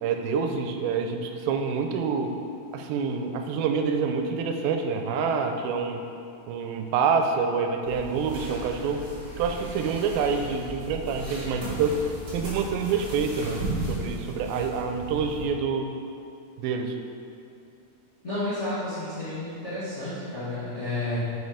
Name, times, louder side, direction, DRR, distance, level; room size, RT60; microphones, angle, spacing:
voice 1, 0.0-2.3 2.7-6.0 6.5-9.1 9.4-12.0 12.3-13.6 13.9-15.9 16.6-17.0, right 5 dB, 90° right, 5 dB, 2.4 m, -27 dB
sound 1, 7.8-15.5, right 2 dB, 45° right, 2.3 m, -36 dB
voice 2, 18.2-21.2, left 2 dB, 85° left, -14 dB, 0.6 m, -31 dB
6.3 x 5.2 x 4.9 m, 2.6 s
omnidirectional pair, 4.1 m